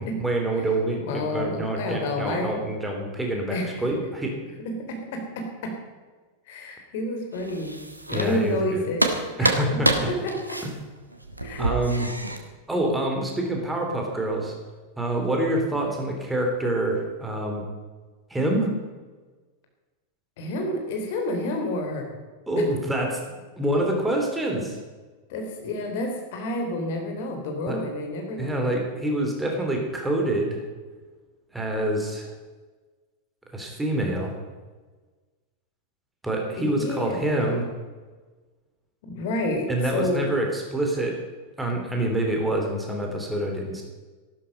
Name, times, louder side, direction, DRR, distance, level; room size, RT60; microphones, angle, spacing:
voice 1, 0.0-4.4 8.1-8.8 9.4-10.1 10.6-10.7 11.6-12.1 12.7-14.5 15.0-17.6 18.3-18.7 22.5-23.2 23.6-24.8 27.7-27.8 28.4-30.6 31.5-32.3 33.5-34.4 36.2-37.7 39.7-41.2 41.6-43.8, right 1 dB, 5° right, 1 dB, 3.3 m, -26 dB
voice 2, 1.0-2.6 3.5-3.8 4.6-5.7 6.5-7.8 8.1-9.5 10.1-10.6 11.4-11.7 20.4-22.1 22.6-22.7 25.3-28.6 36.6-37.4 39.0-40.3, left 1 dB, 50° left, 3 dB, 3.5 m, -29 dB
sound 1, 7.3-8.7 9.0-12.4, right 1 dB, 85° right, 1.5 m, -27 dB
14.5 x 12.5 x 5.3 m, 1.3 s
figure-of-eight pair, 90°, 0 cm